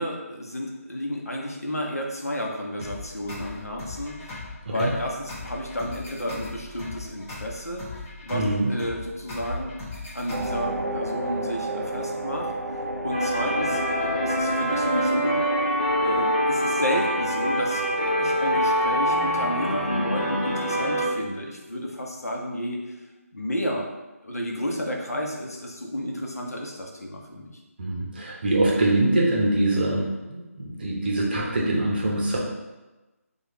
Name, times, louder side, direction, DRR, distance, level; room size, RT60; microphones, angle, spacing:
voice 1, 0.0-4.4 4.7-7.8 8.2-8.4 8.7-9.7 10.1-12.5 13.0-15.4 16.0-23.0 23.3-23.9 24.2-27.6, equal, 80° left, 0 dB, 0.7 m, -31 dB
sound 1, 2.8-10.8, left 3 dB, 15° left, 0.9 m, -39 dB
voice 2, 8.3-8.7 27.8-32.4, right 1 dB, 40° right, -3 dB, 0.8 m, -24 dB
sound 2, 10.3-15.6, right 1 dB, 85° right, 0.4 m, -31 dB
sound 3, 13.1-21.1, equal, 40° left, 1.3 m, -24 dB
4.7 x 2.4 x 2.9 m, 1.1 s
figure-of-eight pair, 155°, 8 cm